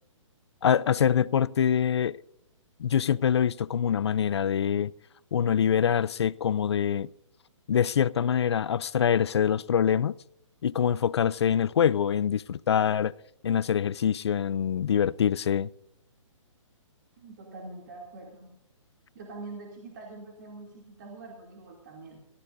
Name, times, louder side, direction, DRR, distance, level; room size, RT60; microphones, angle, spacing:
voice 1, 0.6-2.2 2.8-4.9 5.3-7.1 7.7-10.1 10.6-13.1 13.4-15.7, left 8 dB, 55° left, 0.4 m, -24 dB
voice 2, 17.2-18.5 19.1-22.2, right 3 dB, 35° right, 2.5 m, -44 dB
23.5 x 14.0 x 2.6 m
hypercardioid pair, 170°, 17 cm